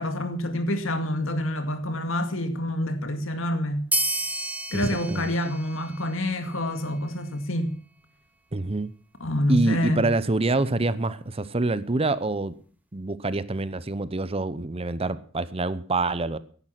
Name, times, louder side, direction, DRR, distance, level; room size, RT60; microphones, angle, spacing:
voice 1, 0.0-3.9 4.7-7.7 9.2-10.1, left 1 dB, 80° left, 2.2 m, -27 dB
sound 1, 3.9-6.9, right 2 dB, 10° right, 1.1 m, -31 dB
voice 2, 4.7-5.4 8.5-8.9 9.5-12.5 12.9-16.4, right 2 dB, 30° right, 0.8 m, -26 dB
15.5 x 11.0 x 5.8 m
head